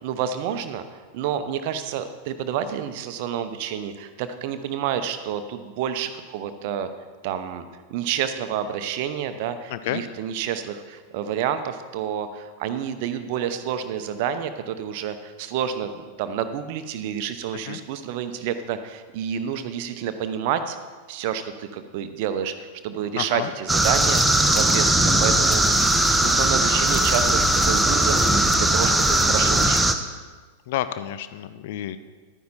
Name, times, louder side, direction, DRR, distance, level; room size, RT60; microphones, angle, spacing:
voice 1, 0.0-6.9 7.2-7.6 7.9-20.8 21.1-27.4 27.6-28.3 28.5-30.0, right 9 dB, 50° right, 10 dB, 0.8 m, -29 dB
voice 2, 9.7-10.0 17.7-17.8 23.2-23.5 30.7-32.0, left 12 dB, 50° left, 13 dB, 0.5 m, -29 dB
sound 1, 23.7-29.9, right 1 dB, 5° right, 0.8 m, -19 dB
12.0 x 9.5 x 4.3 m, 1.4 s
figure-of-eight pair, 90°, 0 cm